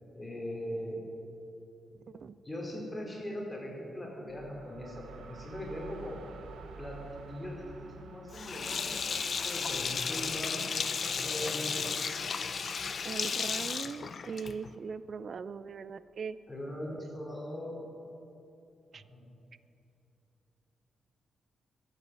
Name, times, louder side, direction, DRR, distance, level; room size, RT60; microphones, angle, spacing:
voice 1, 0.1-1.0 2.4-6.2 6.8-7.0 7.3-10.7 11.0-12.0 16.5-17.8 18.9-19.4, equal, 10° left, -2 dB, 3.1 m, -40 dB
voice 2, 2.1-2.4 13.0-16.4 18.9-19.0, right 5 dB, 45° right, 15 dB, 0.4 m, -40 dB
sound 1, 4.3-15.9, right 5 dB, 80° right, 0.9 m, -53 dB
Sink (filling or washing), 8.3-14.7, left 5 dB, 40° left, 0.6 m, -34 dB
22.5 x 8.3 x 6.2 m, 2.8 s
wide cardioid pair, 165°, 0 cm